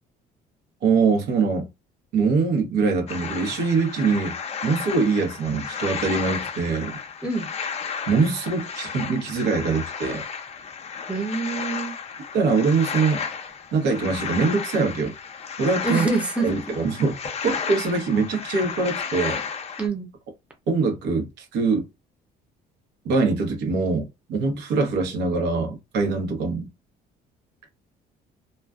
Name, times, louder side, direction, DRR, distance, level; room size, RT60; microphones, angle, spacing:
voice 1, 0.8-1.7 2.1-4.3 4.6-7.0 8.1-10.2 12.3-13.2 13.7-15.1 15.6-16.1 16.4-17.2 17.4-19.4 20.7-21.8 23.0-26.7, right 4 dB, 90° right, 1.0 m, -23 dB
sound 1, 3.1-19.9, left 6 dB, 40° left, 0.5 m, -33 dB
voice 2, 11.1-11.9 15.8-16.6 19.8-20.1, right 3 dB, 5° right, 0.6 m, -26 dB
2.4 x 2.3 x 2.3 m
cardioid pair, 110°, 17 cm